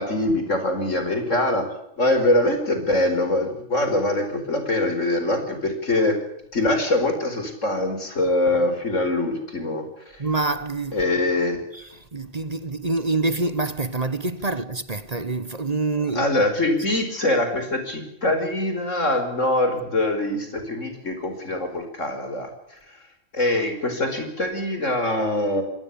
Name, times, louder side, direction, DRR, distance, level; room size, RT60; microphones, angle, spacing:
voice 1, 0.0-1.7 2.0-6.2 6.5-9.9 10.1-10.2 10.9-11.6 16.0-23.0 23.3-25.6, left 1 dB, 85° left, 5.2 m, -23 dB
voice 2, 10.2-11.0 11.7-16.3, right 3 dB, 35° right, 1.2 m, -26 dB
26.5 x 18.5 x 7.1 m
omnidirectional pair, 1.3 m